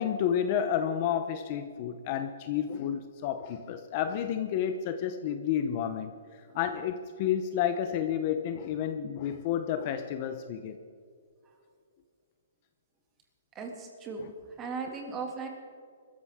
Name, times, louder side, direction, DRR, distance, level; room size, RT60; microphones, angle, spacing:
voice 1, 0.0-6.1 6.5-10.8 14.2-14.3, left 9 dB, 30° left, 8 dB, 0.7 m, -30 dB
voice 2, 13.5-14.2 14.6-15.5, right 5 dB, 15° right, 2 dB, 2.2 m, -37 dB
23.0 x 14.0 x 3.6 m, 2.2 s
hypercardioid pair, 170°, 0 cm